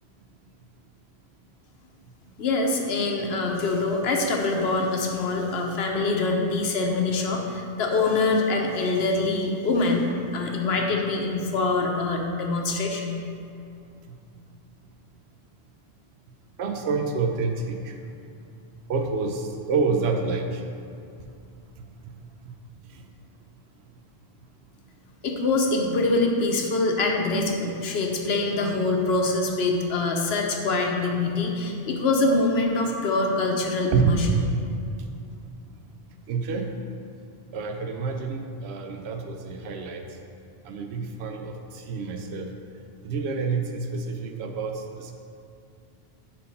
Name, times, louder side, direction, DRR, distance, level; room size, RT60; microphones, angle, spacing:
voice 1, 2.4-13.1 25.2-34.3, left 3 dB, 70° left, 1 dB, 1.0 m, -24 dB
voice 2, 16.6-17.9 18.9-20.6 22.9-23.0 33.9-34.2 35.0-35.1 36.3-36.7 37.5-40.0 40.6-42.5 43.0-45.1, right 4 dB, 80° right, 4 dB, 0.9 m, -28 dB
5.3 x 4.4 x 5.4 m, 2.4 s
omnidirectional pair, 1.1 m